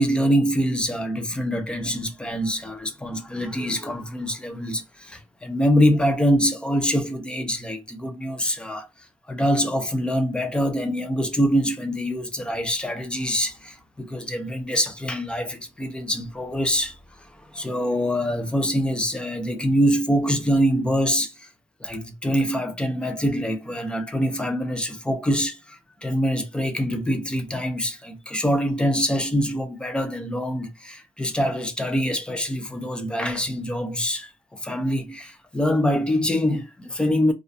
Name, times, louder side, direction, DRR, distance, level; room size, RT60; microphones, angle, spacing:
voice 1, 0.0-8.9 9.3-17.0 17.5-21.5 21.8-37.3, equal, 10° left, 0.4 m, -24 dB
2.3 x 2.2 x 2.5 m
cardioid pair, 170°, 11 cm